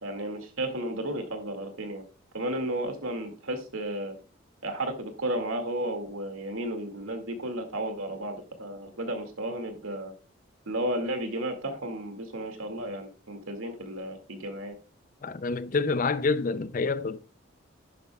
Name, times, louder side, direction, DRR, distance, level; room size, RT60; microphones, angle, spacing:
voice 1, 0.0-2.0 2.3-4.1 4.6-10.1 10.7-14.8, right 1 dB, 85° right, 2.1 m, -33 dB
voice 2, 15.2-17.2, left 4 dB, 40° left, 0.4 m, -27 dB
11.0 x 10.5 x 2.3 m
head